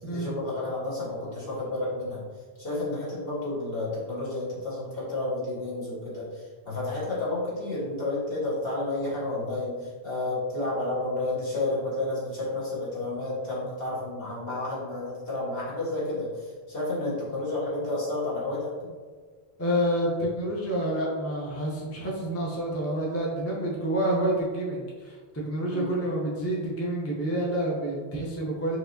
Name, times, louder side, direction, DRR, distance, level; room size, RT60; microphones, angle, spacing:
voice 1, 0.0-2.2 2.6-18.9 25.7-25.9, left 2 dB, 60° left, -7 dB, 1.5 m, -31 dB
voice 2, 19.6-28.8, right 1 dB, 20° left, -3 dB, 0.5 m, -28 dB
4.6 x 3.0 x 2.6 m, 1.5 s
omnidirectional pair, 1.1 m